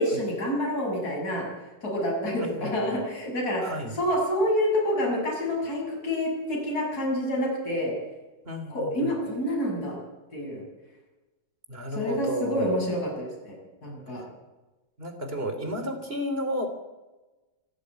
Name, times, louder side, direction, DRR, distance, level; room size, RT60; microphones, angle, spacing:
voice 1, 0.0-1.5 1.8-7.9 8.7-10.0 10.3-10.6 12.0-13.5 13.8-14.2, equal, 40° left, -1 dB, 7.3 m, -27 dB
voice 2, 2.3-3.0 3.6-4.0 8.4-9.1 11.7-12.7 14.1-14.2 15.0-16.7, equal, 25° right, 7 dB, 3.2 m, -33 dB
26.5 x 11.5 x 9.4 m, 1.1 s
omnidirectional pair, 2.4 m